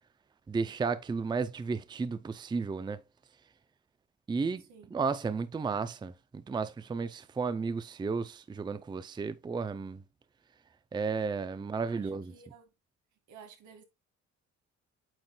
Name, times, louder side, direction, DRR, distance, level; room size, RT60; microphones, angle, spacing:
voice 1, 0.5-3.0 4.3-4.7 4.9-10.0 10.9-12.3, right 4 dB, 15° right, 0.4 m, -33 dB
voice 2, 11.7-12.7 13.3-13.8, right 6 dB, 85° right, 2.1 m, -53 dB
8.8 x 6.1 x 2.3 m
cardioid pair, 135°, 29 cm